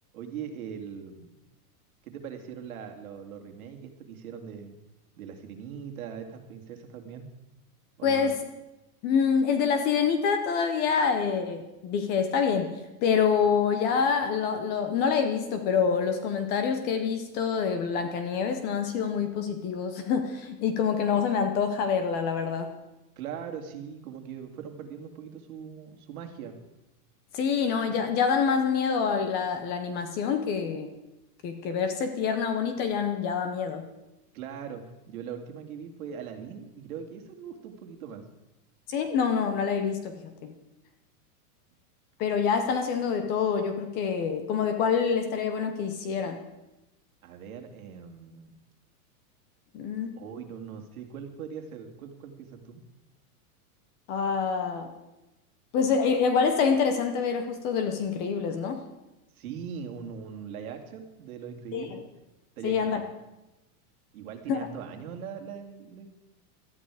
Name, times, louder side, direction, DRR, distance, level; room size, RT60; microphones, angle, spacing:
voice 1, 0.1-1.4 2.0-4.8 5.2-7.3 8.0-8.4 23.2-26.6 34.3-38.2 47.2-48.5 50.2-52.8 59.3-62.0 62.6-63.0 64.1-66.1, right 7 dB, 65° right, 4 dB, 2.5 m, -41 dB
voice 2, 8.0-8.4 9.0-12.7 13.0-22.7 27.3-30.9 31.4-33.9 38.9-40.6 42.2-46.4 49.7-50.2 54.1-54.9 55.7-58.8 61.7-62.0 62.6-63.0 64.5-64.6, left 6 dB, 20° left, 8 dB, 0.8 m, -26 dB
17.5 x 13.0 x 4.9 m, 0.97 s
supercardioid pair, 175°, 46 cm